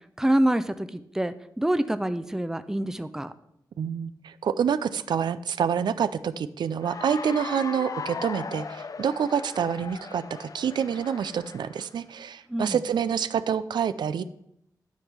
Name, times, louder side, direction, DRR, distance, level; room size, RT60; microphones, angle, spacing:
voice 1, 0.2-3.3 12.5-12.8, right 1 dB, 5° right, 11 dB, 0.5 m, -26 dB
voice 2, 3.8-14.2, right 7 dB, 90° right, 14 dB, 0.3 m, -27 dB
Cheering / Applause, 6.8-11.9, left 5 dB, 55° left, 0.4 m, -38 dB
9.8 x 3.7 x 5.9 m, 0.78 s
cardioid pair, 55°, 7 cm